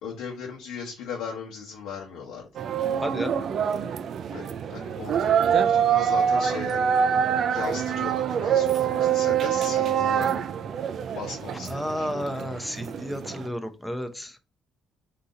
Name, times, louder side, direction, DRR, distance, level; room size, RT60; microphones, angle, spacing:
voice 1, 0.0-2.6 4.3-4.4 4.7-6.9 7.5-10.3 11.1-12.4, left 6 dB, 80° left, 0.9 m, -37 dB
sound 1, 2.6-13.5, right 8 dB, 55° right, 0.4 m, -25 dB
voice 2, 3.0-3.3 11.7-14.4, equal, 5° left, 0.6 m, -32 dB
3.8 x 2.8 x 3.8 m
cardioid pair, 100°, 0 cm